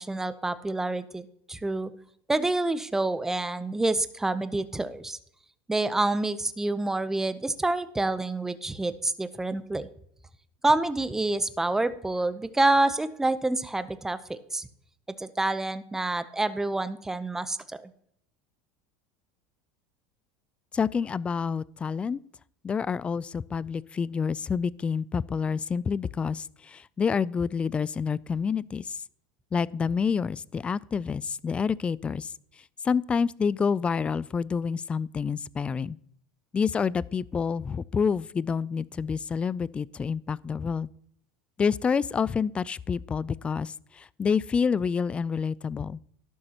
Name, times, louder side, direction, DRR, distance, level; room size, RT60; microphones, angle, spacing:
voice 1, 0.0-1.9 2.3-5.2 5.7-9.9 10.6-14.7 15.2-17.9, right 2 dB, 10° right, 0.7 m, -27 dB
voice 2, 20.7-22.2 22.6-29.0 29.5-32.3 32.8-36.0 36.5-40.9 41.6-46.0, left 6 dB, 20° left, 0.3 m, -28 dB
12.0 x 12.0 x 2.9 m
supercardioid pair, 120°, 6 cm